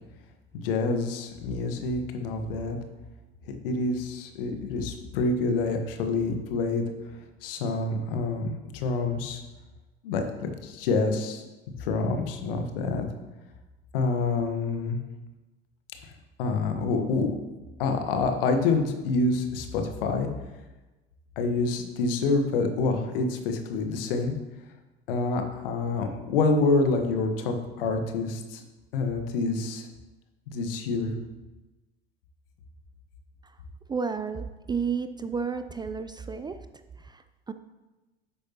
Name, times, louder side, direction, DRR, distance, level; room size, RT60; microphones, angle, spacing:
voice 1, 0.5-2.8 3.6-6.8 7.4-9.4 10.0-11.4 11.8-13.1 13.9-15.0 16.4-17.3 17.8-20.3 21.4-24.3 25.1-28.6 28.9-29.9 30.5-31.1, left 3 dB, 65° left, 5 dB, 1.4 m, -27 dB
voice 2, 33.9-36.6 37.0-37.5, right 5 dB, 15° right, 10 dB, 0.4 m, -32 dB
11.5 x 8.4 x 3.0 m, 1.1 s
figure-of-eight pair, 70°, 30 cm